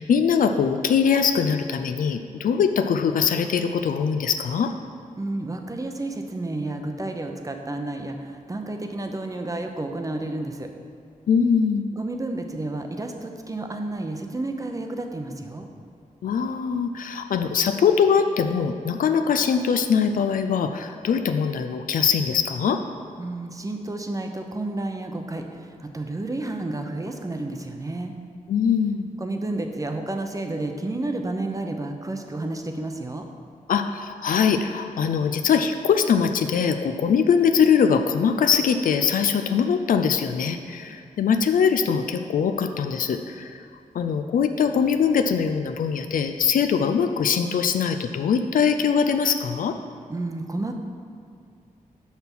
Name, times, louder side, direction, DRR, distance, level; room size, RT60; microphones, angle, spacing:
voice 1, 0.0-4.7 11.3-11.9 16.2-22.8 28.5-29.1 33.7-43.6 43.9-49.7, left 6 dB, 80° left, 7 dB, 0.4 m, -22 dB
voice 2, 5.2-10.7 11.9-15.7 23.2-28.1 29.2-33.3 50.1-50.7, right 2 dB, 25° right, 4 dB, 0.7 m, -31 dB
5.8 x 5.6 x 6.0 m, 2.4 s
cardioid pair, 80°, 14 cm